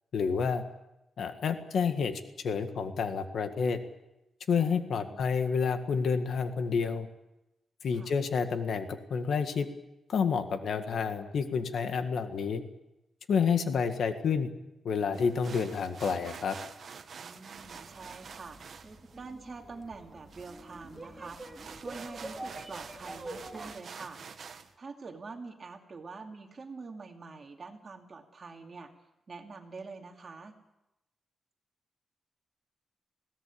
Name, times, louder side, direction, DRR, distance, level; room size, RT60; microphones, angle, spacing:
voice 1, 0.1-0.6 1.2-2.1 2.4-3.8 4.5-7.1 7.8-9.7 10.1-12.6 13.3-14.5 14.8-16.6, left 6 dB, 70° left, 8 dB, 1.8 m, -29 dB
voice 2, 4.9-5.4 7.9-8.1 17.2-18.6 19.2-21.4 21.7-24.2 24.8-28.9 29.3-30.5, right 4 dB, 35° right, 3 dB, 2.6 m, -45 dB
sound 1, 15.1-24.7, right 6 dB, 55° right, 1.4 m, -48 dB
sound 2, 17.6-23.7, right 1 dB, 15° right, 2.5 m, -46 dB
21.5 x 17.5 x 8.6 m, 0.94 s
wide cardioid pair, 135°, 0 cm